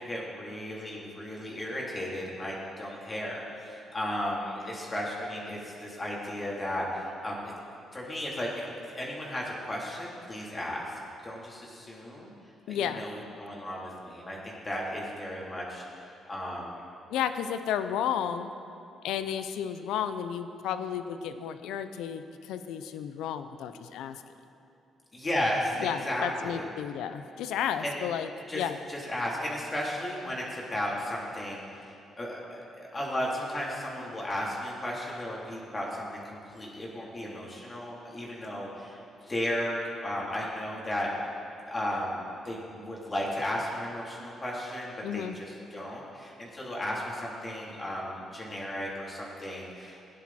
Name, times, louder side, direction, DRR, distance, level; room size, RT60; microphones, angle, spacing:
voice 1, 0.0-7.5 7.9-8.6 8.9-10.8 11.2-12.3 12.7-16.8 25.1-26.7 27.8-27.9 28.5-28.6 28.9-39.0 39.2-41.1 41.7-50.0, left 1 dB, 25° left, -4 dB, 3.3 m, -35 dB
voice 2, 12.7-13.1 17.1-18.5 19.0-24.2 25.8-28.3 28.5-28.8 45.0-45.4, left 9 dB, 90° left, 10 dB, 0.6 m, -32 dB
17.0 x 10.5 x 4.3 m, 2.7 s
cardioid pair, 90°, 0 cm